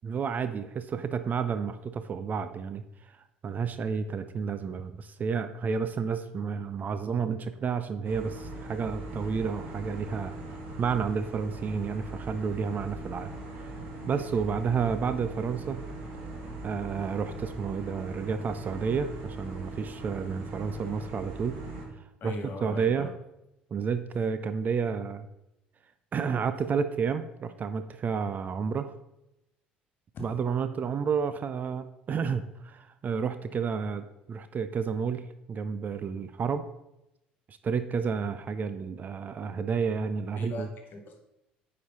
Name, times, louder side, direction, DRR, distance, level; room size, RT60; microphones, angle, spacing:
voice 1, 0.0-3.2 3.4-10.3 10.8-13.3 13.6-13.7 14.1-15.8 16.6-21.6 22.2-23.1 23.7-25.3 26.1-28.9 30.2-36.7 37.5-40.7, right 6 dB, 35° right, 12 dB, 0.6 m, -31 dB
sound 1, 8.0-21.9, right 2 dB, 55° right, 1.8 m, -40 dB
voice 2, 22.2-23.1 40.3-41.2, left 2 dB, 45° left, 3 dB, 1.9 m, -39 dB
9.4 x 5.1 x 4.1 m, 0.88 s
figure-of-eight pair, 60°, 5 cm